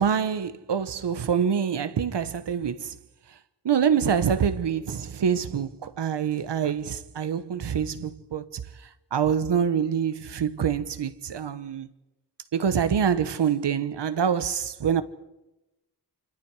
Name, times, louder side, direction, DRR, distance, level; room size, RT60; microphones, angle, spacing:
voice 1, 0.0-2.9 3.6-8.4 9.1-11.9 12.5-15.0, right 7 dB, 90° right, 1.2 m, -25 dB
27.5 x 26.0 x 4.8 m
wide cardioid pair, 160°, 41 cm